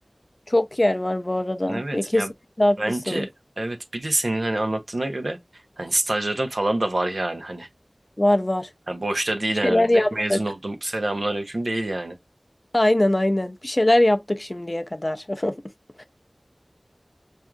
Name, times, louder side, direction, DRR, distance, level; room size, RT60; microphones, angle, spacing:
voice 1, 0.5-2.3 2.6-2.8 3.1-3.3 8.2-8.7 9.6-10.4 12.7-15.5 16.0-16.1, left 1 dB, 40° left, 0.5 m, -21 dB
voice 2, 1.7-2.3 2.8-3.3 3.6-5.4 5.8-7.7 8.9-12.2, right 1 dB, 75° right, 0.7 m, -26 dB
4.6 x 2.6 x 2.3 m
wide cardioid pair, 40°, 0 cm